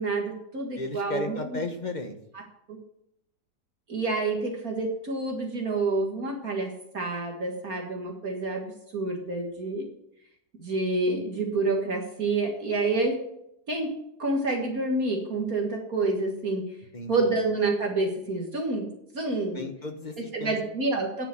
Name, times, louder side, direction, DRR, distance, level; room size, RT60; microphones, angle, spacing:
voice 1, 0.0-1.6 2.3-2.4 2.7-2.8 3.9-9.9 10.6-13.2 13.7-13.9 14.2-16.7 17.1-18.9 19.1-19.6 20.3-21.3, right 3 dB, 55° right, 1 dB, 2.3 m, -28 dB
voice 2, 0.7-2.2 16.9-17.1 19.5-20.1 20.4-20.6, left 2 dB, 30° left, 5 dB, 1.1 m, -34 dB
10.0 x 6.8 x 8.9 m, 0.77 s
omnidirectional pair, 1.9 m